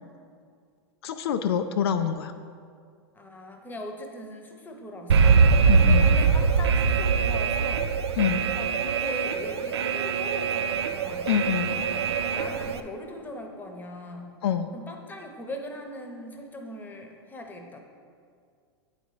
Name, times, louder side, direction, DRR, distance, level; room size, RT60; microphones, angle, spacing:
voice 1, 1.0-2.3 5.7-6.1 8.2-8.4 11.3-11.8 14.4-14.7, left 8 dB, 75° left, 8 dB, 0.4 m, -26 dB
voice 2, 3.1-7.9 8.6-11.3 11.7-14.3 14.7-17.8, left 1 dB, 15° left, 4 dB, 0.9 m, -40 dB
Alarm, 5.1-12.8, right 5 dB, 90° right, 0.4 m, -22 dB
8.6 x 4.1 x 4.8 m, 2.2 s
hypercardioid pair, 115°, 13 cm